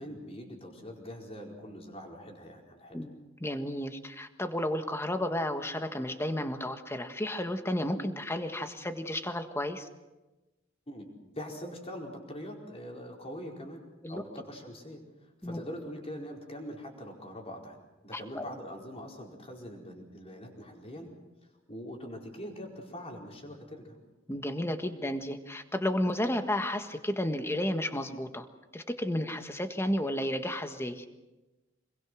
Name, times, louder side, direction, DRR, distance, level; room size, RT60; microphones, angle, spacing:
voice 1, 0.0-3.0 10.9-11.1 11.3-13.8 14.1-17.8 18.0-21.1 21.7-24.0, equal, 30° left, 0 dB, 4.8 m, -43 dB
voice 2, 3.4-9.9 14.0-14.2 15.4-15.6 18.1-18.4 24.3-28.5 28.7-31.0, left 1 dB, 15° left, 7 dB, 1.5 m, -32 dB
26.0 x 22.0 x 6.3 m, 1.1 s
head